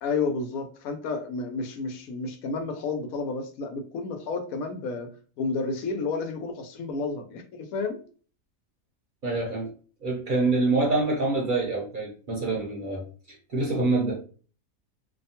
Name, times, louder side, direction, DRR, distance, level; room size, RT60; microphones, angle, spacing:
voice 1, 0.0-5.1 5.4-8.0, left 4 dB, 85° left, 5 dB, 1.0 m, -31 dB
voice 2, 9.2-9.7 10.0-14.2, right 2 dB, 45° right, -2 dB, 0.7 m, -26 dB
2.7 x 2.2 x 2.7 m, 0.40 s
omnidirectional pair, 1.5 m